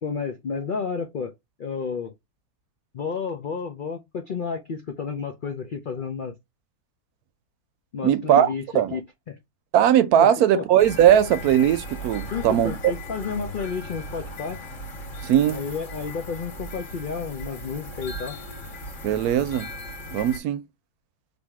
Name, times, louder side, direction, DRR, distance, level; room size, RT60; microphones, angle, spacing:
voice 1, 0.0-1.3 1.6-2.1 2.9-6.3 7.9-9.0 9.3-9.4 10.2-10.7 12.3-14.6 15.5-18.4, left 5 dB, 80° left, 0.4 m, -31 dB
voice 2, 8.0-8.5 8.7-9.0 9.7-12.7 15.2-15.6 19.0-19.7 20.1-20.6, right 10 dB, 75° right, 1.0 m, -19 dB
sound 1, 10.8-20.4, equal, 50° left, 1.8 m, -37 dB
3.5 x 2.6 x 4.6 m
omnidirectional pair, 1.7 m